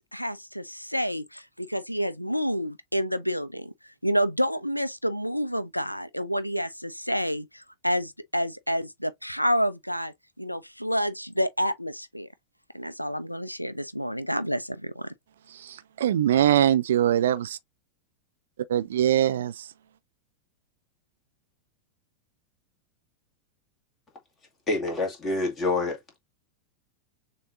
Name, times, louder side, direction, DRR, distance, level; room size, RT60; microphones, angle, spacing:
voice 1, 0.1-12.3 12.7-15.1, equal, 90° left, 0.4 m, -29 dB
voice 2, 15.5-17.6 18.7-19.7, right 11 dB, 60° right, 0.4 m, -23 dB
voice 3, 24.7-26.2, left 2 dB, 20° left, 2.0 m, -27 dB
6.6 x 2.7 x 2.6 m
figure-of-eight pair, 90°, 0 cm